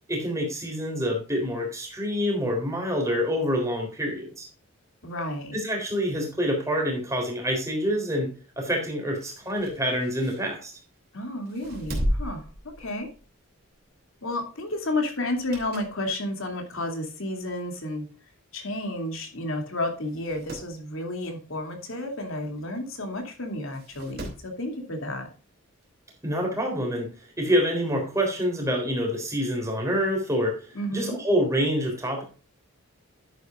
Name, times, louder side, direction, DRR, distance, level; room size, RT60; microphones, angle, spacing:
voice 1, 0.1-4.5 5.5-8.3 8.6-10.7 26.2-27.1 27.4-30.7 30.9-32.2, equal, 15° right, 1 dB, 3.7 m, -26 dB
voice 2, 5.0-5.6 11.1-12.5 12.8-13.1 14.2-18.1 18.5-25.3 30.7-31.2, left 1 dB, 65° left, 4 dB, 2.8 m, -31 dB
sound 1, 9.0-11.0 11.5-13.3 13.7-13.9 15.2-16.0 16.5-16.6 17.5-17.6 17.8-17.9 18.1-18.2 19.1-19.2 19.6-19.7 20.0-20.7 22.6-22.7 23.7-24.5 25.8-25.9, equal, 45° right, 2.9 m, -35 dB
11.0 x 9.3 x 2.5 m, 0.36 s
head